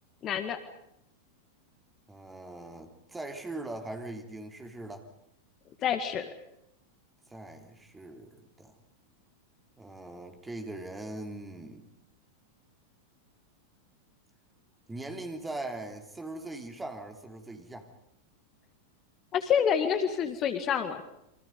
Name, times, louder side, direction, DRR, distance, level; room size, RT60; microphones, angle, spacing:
voice 1, 0.2-0.6 5.8-6.3 19.3-21.0, left 8 dB, 30° left, 9 dB, 1.8 m, -27 dB
voice 2, 2.1-5.1 7.3-8.7 9.8-11.9 14.9-17.9, right 2 dB, 10° right, 5 dB, 3.3 m, -41 dB
29.0 x 24.5 x 5.3 m, 0.81 s
figure-of-eight pair, 90°, 0 cm